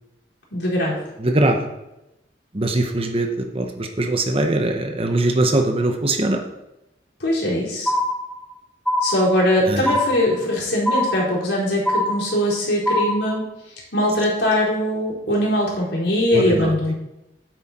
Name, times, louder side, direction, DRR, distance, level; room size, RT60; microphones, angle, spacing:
voice 1, 0.5-1.1 7.2-7.9 9.0-13.4 13.9-16.9, left 1 dB, 80° left, -5 dB, 4.0 m, -21 dB
voice 2, 1.2-1.6 2.5-3.3 3.5-6.4 9.7-10.0 16.3-16.4, right 2 dB, 35° right, 4 dB, 1.0 m, -21 dB
sound 1, 7.9-8.5 8.9-9.5 9.9-10.5 10.9-11.5 11.9-12.5 12.9-13.4, left 1 dB, 5° left, 1.0 m, -22 dB
8.8 x 8.1 x 4.3 m, 0.91 s
head